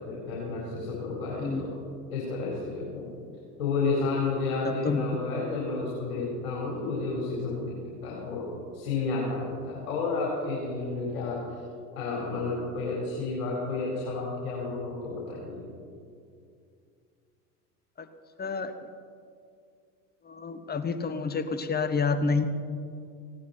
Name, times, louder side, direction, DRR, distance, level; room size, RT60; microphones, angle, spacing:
voice 1, 0.0-1.7 2.1-3.1 3.6-8.5 8.7-11.4 11.9-15.6, left 3 dB, 60° left, -4 dB, 4.4 m, -31 dB
voice 2, 4.6-5.0 18.4-18.7 20.3-22.4, left 4 dB, 20° left, 11 dB, 1.0 m, -28 dB
18.5 x 17.0 x 4.4 m, 2.3 s
figure-of-eight pair, 75°, 47 cm